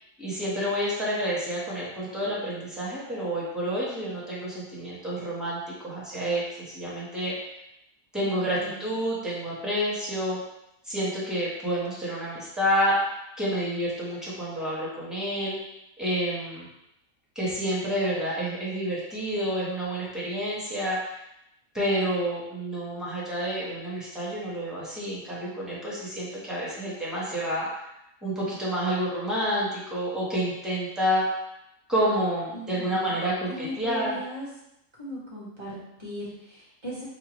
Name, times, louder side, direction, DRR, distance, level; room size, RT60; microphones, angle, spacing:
voice 1, 0.2-5.6 5.8-6.4 6.7-7.3 8.1-10.4 10.8-13.0 13.4-15.6 16.0-16.7 17.3-21.2 21.7-27.8 28.2-31.2 31.9-34.2, equal, ahead, -7 dB, 0.9 m, -29 dB
voice 2, 8.2-8.8 32.5-33.2 33.5-34.5 35.0-37.0, equal, 20° right, -7 dB, 1.2 m, -38 dB
5.1 x 2.1 x 3.0 m, 0.84 s
omnidirectional pair, 1.5 m